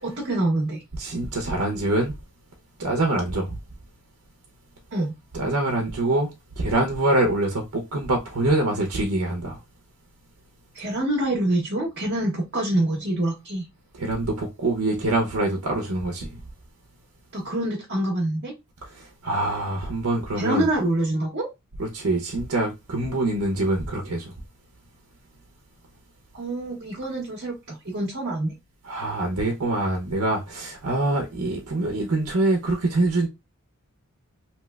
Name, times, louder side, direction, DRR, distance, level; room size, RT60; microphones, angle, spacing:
voice 1, 0.0-0.8 4.9-5.1 10.7-13.6 17.3-18.5 20.4-21.5 26.3-28.5, right 1 dB, 45° right, 0.8 m, -26 dB
voice 2, 1.0-2.1 2.8-3.5 5.3-6.3 6.6-9.6 13.9-16.3 18.9-20.7 21.8-24.3 28.8-33.3, right 2 dB, 80° right, 0.7 m, -24 dB
3.2 x 2.9 x 2.3 m
head